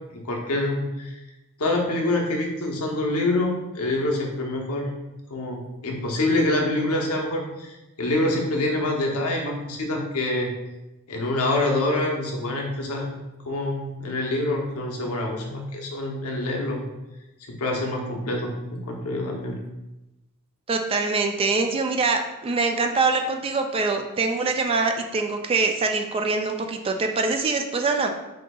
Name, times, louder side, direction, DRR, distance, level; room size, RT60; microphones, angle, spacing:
voice 1, 0.1-1.2 1.6-4.9 5.3-10.5 11.1-13.2 13.5-16.9 17.5-19.6, left 2 dB, 75° left, 0 dB, 0.8 m, -26 dB
voice 2, 20.7-28.1, right 3 dB, 25° right, 4 dB, 0.3 m, -24 dB
6.3 x 2.7 x 2.3 m, 0.99 s
head